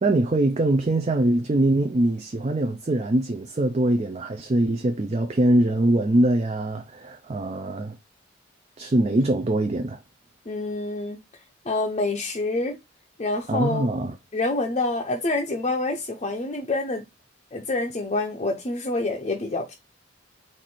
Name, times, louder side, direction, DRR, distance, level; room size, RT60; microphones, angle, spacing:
voice 1, 0.0-7.9 8.8-10.0 13.5-14.1, right 1 dB, 35° right, 0.4 m, -23 dB
voice 2, 10.5-11.2 11.7-12.8 13.2-13.9 14.3-17.0 17.5-19.7, left 2 dB, 30° left, 0.6 m, -27 dB
4.5 x 2.6 x 4.1 m
head